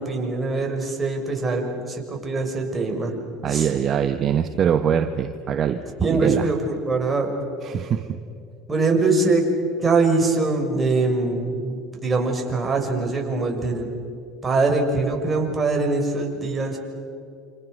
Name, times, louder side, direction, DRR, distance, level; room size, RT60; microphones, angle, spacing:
voice 1, 0.0-3.2 3.5-3.7 6.0-7.3 8.7-9.4 9.8-13.9 14.4-16.8, right 3 dB, 20° right, 2 dB, 6.2 m, -23 dB
voice 2, 3.4-5.8 6.1-6.5 7.6-8.2, right 8 dB, 45° right, 8 dB, 1.2 m, -23 dB
28.5 x 27.0 x 6.6 m, 2.4 s
hypercardioid pair, 85°, 0 cm